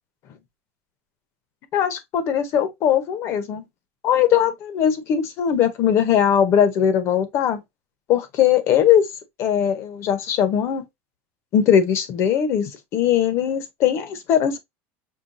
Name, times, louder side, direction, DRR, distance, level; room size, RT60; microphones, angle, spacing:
voice 1, 1.7-3.6 4.0-7.6 8.1-9.1 9.4-10.8 11.5-14.6, left 9 dB, 40° left, 0.8 m, -20 dB
5.5 x 2.2 x 2.5 m
cardioid pair, 160°, 7 cm